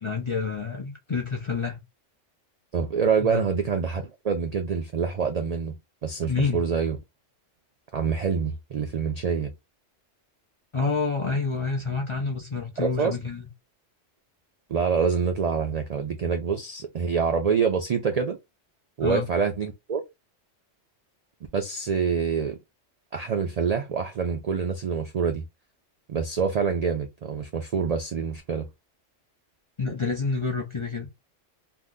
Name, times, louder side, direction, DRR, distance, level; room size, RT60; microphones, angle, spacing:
voice 1, 0.0-1.8 3.2-3.4 6.2-6.6 10.7-13.5 19.0-19.3 29.8-31.1, left 4 dB, 40° left, 0.4 m, -28 dB
voice 2, 2.7-5.7 6.0-7.0 7.9-9.5 12.8-13.2 14.7-18.4 19.0-20.0 21.5-22.6 23.1-25.4 26.1-28.7, right 6 dB, 85° right, 0.3 m, -26 dB
2.8 x 2.0 x 3.5 m
omnidirectional pair, 1.3 m